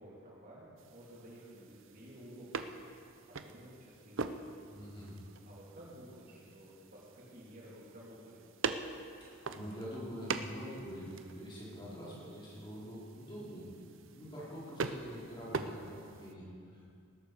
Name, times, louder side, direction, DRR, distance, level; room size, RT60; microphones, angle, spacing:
voice 1, 0.0-2.7 3.3-4.3 5.4-8.4, equal, 40° right, -6 dB, 3.3 m, -53 dB
sound 1, 0.8-16.3, right 4 dB, 60° right, 0.6 m, -44 dB
voice 2, 4.7-5.2 9.2-13.6 14.1-17.0, equal, 20° left, -8 dB, 4.3 m, -45 dB
19.5 x 11.5 x 5.0 m, 2.3 s
head